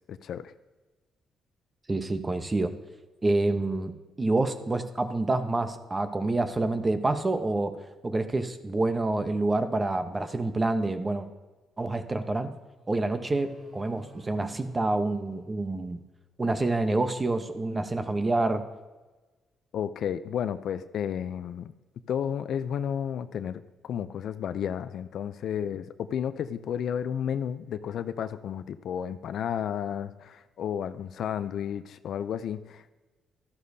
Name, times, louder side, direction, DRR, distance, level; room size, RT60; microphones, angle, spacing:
voice 1, 0.1-0.5 19.7-21.7 22.1-32.9, left 9 dB, 70° left, 12 dB, 0.4 m, -32 dB
voice 2, 1.9-2.7 3.2-3.9 4.2-7.8 8.0-11.3 11.8-12.5 12.9-16.0 16.4-18.6, right 2 dB, 25° right, 8 dB, 0.9 m, -27 dB
sound 1, 12.8-16.1, right 2 dB, 45° right, 2.9 m, -51 dB
13.0 x 11.5 x 2.7 m, 1.2 s
cardioid pair, 90°, 0 cm